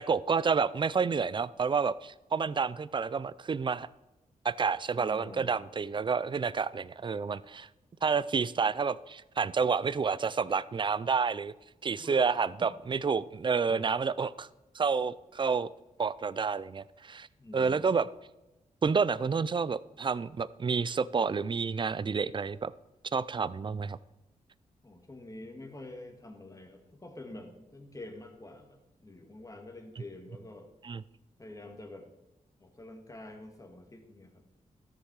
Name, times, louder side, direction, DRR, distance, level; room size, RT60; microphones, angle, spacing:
voice 1, 0.0-3.9 4.4-7.7 8.0-11.5 11.8-14.5 14.7-15.7 16.0-17.3 17.5-18.1 18.8-22.7 23.1-24.0 30.8-31.0, right 5 dB, 35° right, 17 dB, 0.4 m, -29 dB
voice 2, 4.9-5.5 12.0-12.3 13.7-13.9 17.4-17.9 24.8-30.7 31.4-32.1 32.6-34.4, left 2 dB, 25° left, 4 dB, 1.9 m, -47 dB
13.5 x 6.6 x 4.8 m, 1.0 s
cardioid pair, 80°, 14 cm